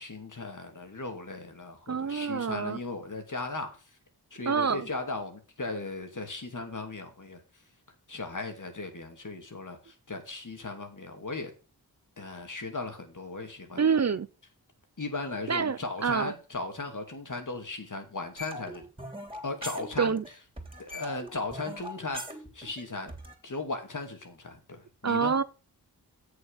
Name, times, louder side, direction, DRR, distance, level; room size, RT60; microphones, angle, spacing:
voice 1, 0.0-3.7 4.3-7.4 8.1-11.5 12.2-13.8 15.0-18.8 19.4-20.1 20.8-22.2 22.5-23.1 23.4-25.3, left 3 dB, 50° left, 2.7 m, -37 dB
voice 2, 1.9-2.8 4.5-4.9 13.8-14.3 15.5-16.3 20.0-20.2 25.0-25.4, right 6 dB, 45° right, 0.6 m, -27 dB
sound 1, 18.4-20.3 20.6-23.4, equal, 15° right, 3.5 m, -41 dB
7.8 x 6.9 x 5.8 m
cardioid pair, 45°, 39 cm